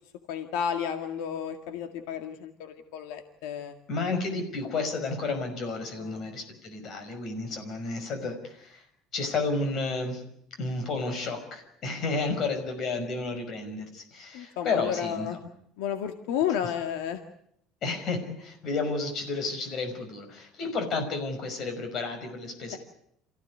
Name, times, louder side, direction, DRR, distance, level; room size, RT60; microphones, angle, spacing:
voice 1, 0.3-3.7 6.0-6.1 14.3-15.4 15.8-17.2, left 9 dB, 85° left, 6 dB, 2.1 m, -32 dB
voice 2, 3.9-8.9 9.1-10.2 10.6-15.3 17.8-22.8, left 3 dB, 35° left, 6 dB, 5.6 m, -31 dB
28.0 x 16.0 x 9.6 m, 0.72 s
cardioid pair, 170°, 0 cm